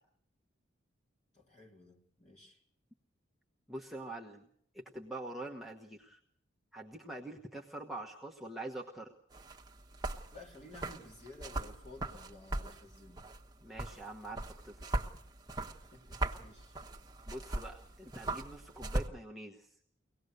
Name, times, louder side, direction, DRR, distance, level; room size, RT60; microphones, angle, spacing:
voice 1, 1.3-2.6 10.3-13.2 15.8-16.7, left 2 dB, 35° left, -1 dB, 3.7 m, -54 dB
voice 2, 3.7-4.5 4.7-6.2 6.7-9.1 13.6-15.1 17.3-19.8, right 2 dB, ahead, -2 dB, 1.1 m, -45 dB
sound 1, 9.3-19.1, right 2 dB, 20° right, 1.2 m, -40 dB
24.0 x 18.5 x 6.7 m, 0.68 s
head